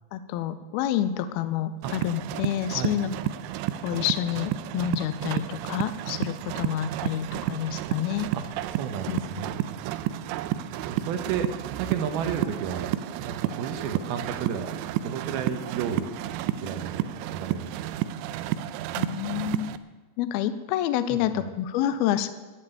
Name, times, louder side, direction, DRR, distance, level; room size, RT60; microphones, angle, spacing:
voice 1, 0.1-3.1 3.8-8.3 9.1-9.2 19.0-19.7 20.2-22.3, left 11 dB, 85° left, 12 dB, 2.2 m, -28 dB
sound 1, 1.8-19.8, right 12 dB, 85° right, 2.9 m, -31 dB
voice 2, 8.7-9.8 10.8-12.9 13.2-14.7 15.0-16.1 16.6-17.0 17.3-18.1 21.1-21.4, right 7 dB, 70° right, 7 dB, 2.6 m, -32 dB
12.0 x 9.8 x 9.1 m, 1.2 s
omnidirectional pair, 5.1 m